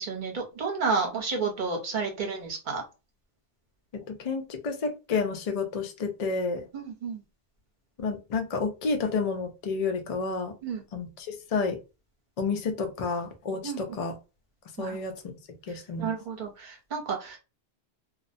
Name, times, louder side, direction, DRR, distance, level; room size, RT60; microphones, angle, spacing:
voice 1, 0.0-2.8 6.7-7.2 10.6-10.8 13.6-14.0 14.8-15.0 15.7-17.4, right 4 dB, 45° right, 2 dB, 0.9 m, -31 dB
voice 2, 4.1-6.7 8.0-10.5 10.9-11.8 12.4-14.1 14.8-15.3 15.7-16.1, left 4 dB, 60° left, 5 dB, 0.3 m, -30 dB
2.3 x 2.0 x 2.6 m, 0.29 s
omnidirectional pair, 1.2 m